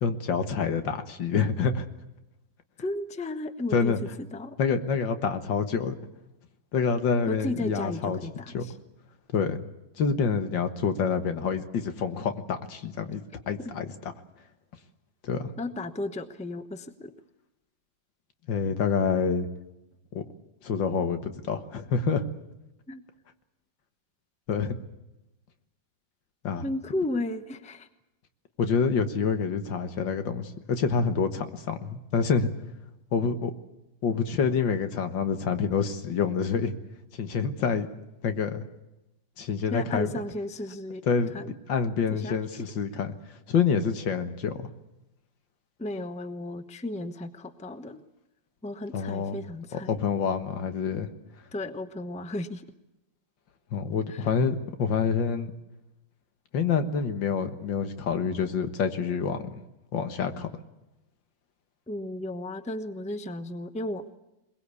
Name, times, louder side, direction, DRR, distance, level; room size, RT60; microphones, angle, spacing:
voice 1, 0.0-1.9 3.7-4.0 4.6-6.0 6.7-8.2 8.5-8.7 9.3-9.6 10.0-13.9 15.2-15.5 18.5-19.5 20.1-20.2 20.6-22.2 24.5-24.8 26.4-26.7 28.6-32.5 33.1-33.5 34.0-36.7 37.2-37.9 38.2-38.6 39.4-40.1 41.1-43.1 43.5-44.7 48.9-49.4 49.9-51.1 53.7-55.5 56.5-59.6 59.9-60.6, left 6 dB, 85° left, 8 dB, 2.1 m, -27 dB
voice 2, 2.8-3.9 4.3-4.6 7.3-8.7 15.6-17.1 22.9-23.0 26.6-27.9 39.7-41.0 41.3-41.5 42.1-42.4 45.8-48.0 48.6-49.9 51.5-52.6 54.1-54.3 61.9-64.2, left 1 dB, 5° left, 10 dB, 0.7 m, -34 dB
22.0 x 21.0 x 8.3 m, 0.96 s
omnidirectional pair, 2.0 m